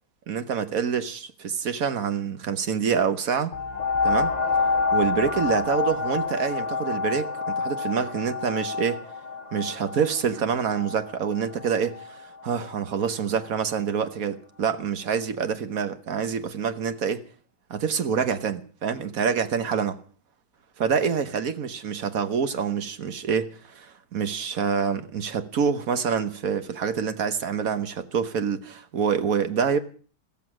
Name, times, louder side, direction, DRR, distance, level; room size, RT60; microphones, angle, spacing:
voice 1, 0.3-3.5 4.0-4.3 4.9-9.0 9.5-17.2 17.7-20.0 20.8-29.8, right 6 dB, 55° right, 1.6 m, -26 dB
sound 1, 3.5-12.8 13.4-13.5, left 4 dB, 30° left, 0.8 m, -28 dB
15.0 x 14.5 x 6.2 m
omnidirectional pair, 1.8 m